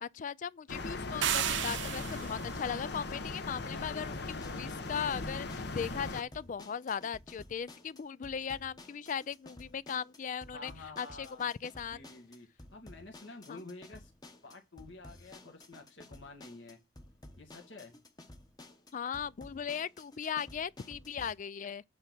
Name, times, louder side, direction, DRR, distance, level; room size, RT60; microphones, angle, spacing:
voice 1, 0.0-10.7 11.0-12.0 13.5-13.6 18.9-21.8, left 7 dB, 45° left, 0.4 m, -38 dB
sound 1, 0.7-6.2, left 3 dB, 60° left, 0.9 m, -39 dB
sound 2, 1.2-2.5, right 10 dB, 70° right, 0.6 m, -32 dB
sound 3, 3.9-21.3, left 1 dB, 20° left, 1.0 m, -54 dB
voice 2, 10.5-11.5 11.9-14.1 14.4-16.8 17.4-18.0, left 3 dB, 80° left, 2.1 m, -50 dB
8.6 x 3.6 x 6.0 m
head